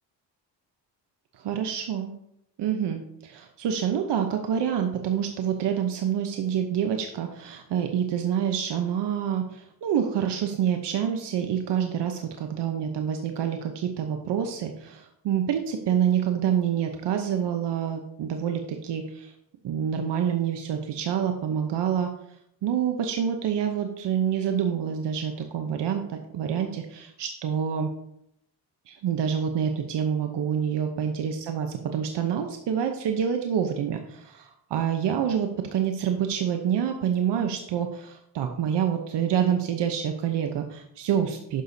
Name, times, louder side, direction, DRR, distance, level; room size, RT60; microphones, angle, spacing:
voice 1, 1.3-2.1 2.6-19.3 19.6-22.1 22.6-27.9 28.9-41.6, right 8 dB, 70° right, 5 dB, 0.9 m, -27 dB
10.0 x 6.8 x 2.8 m, 0.74 s
cardioid pair, 105°, 43 cm